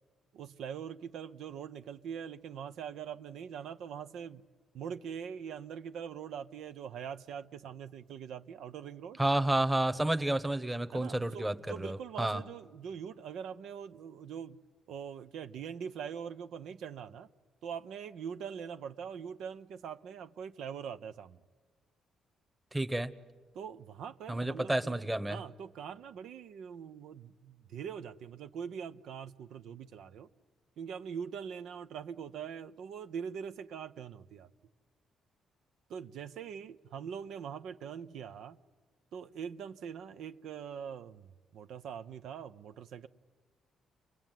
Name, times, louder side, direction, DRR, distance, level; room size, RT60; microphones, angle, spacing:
voice 1, 0.3-4.4 4.7-9.2 10.9-14.6 14.9-17.3 17.6-21.4 23.5-24.9 25.3-30.3 30.8-34.5 35.9-38.6 39.1-43.1, right 7 dB, 75° right, 0.8 m, -43 dB
voice 2, 9.2-12.4 22.7-23.1 24.3-25.4, right 1 dB, 10° right, 1.2 m, -30 dB
29.5 x 22.0 x 9.2 m
cardioid pair, 90°, 0 cm